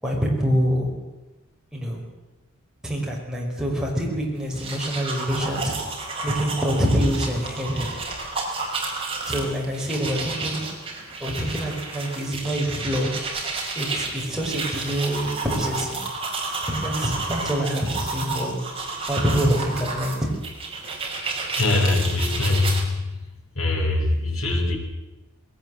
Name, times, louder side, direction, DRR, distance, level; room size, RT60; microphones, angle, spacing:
voice 1, 0.0-0.9 1.7-2.0 2.8-5.7 6.2-7.9 9.3-10.7 11.2-13.1 13.8-16.0 16.7-18.6 19.1-20.3, equal, 5° right, -3 dB, 5.3 m, -25 dB
sound 1, 4.4-22.8, right 3 dB, 25° right, 5.1 m, -31 dB
voice 2, 21.6-23.1 23.5-24.8, left 2 dB, 70° left, 1 dB, 5.3 m, -22 dB
21.0 x 18.0 x 7.8 m, 1.1 s
head